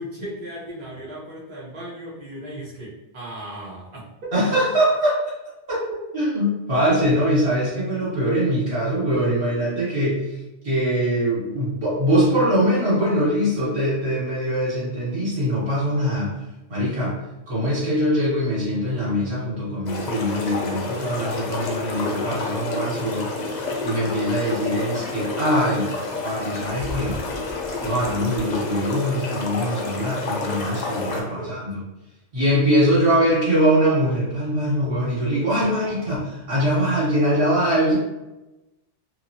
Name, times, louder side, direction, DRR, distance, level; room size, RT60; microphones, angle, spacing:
voice 1, 0.0-4.3 31.2-31.5 35.5-36.1, right 1 dB, 25° right, -8 dB, 0.9 m, -37 dB
voice 2, 4.3-5.2 5.7-5.8 6.1-16.4 16.7-17.1 17.5-25.9 26.2-27.2 27.8-31.8 32.3-37.9, equal, 60° right, -9 dB, 1.5 m, -22 dB
sound 1, 19.9-31.2, left 3 dB, 60° left, 0.4 m, -29 dB
2.9 x 2.4 x 2.6 m, 1.0 s
omnidirectional pair, 1.3 m